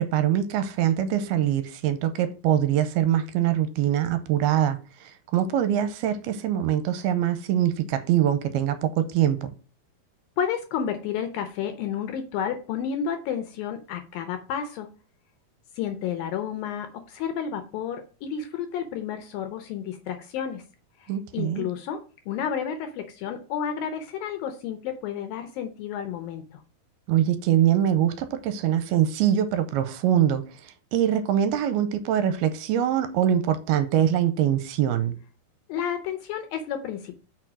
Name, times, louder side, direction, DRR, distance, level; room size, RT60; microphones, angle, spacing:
voice 1, 0.0-4.8 5.3-9.5 21.1-21.7 27.1-30.4 30.9-35.2, right 10 dB, 85° right, 2.5 m, -23 dB
voice 2, 10.4-14.9 15.8-20.6 21.0-22.0 22.3-26.6 35.7-37.2, left 8 dB, 75° left, 2.2 m, -31 dB
5.9 x 4.6 x 6.0 m
omnidirectional pair, 4.7 m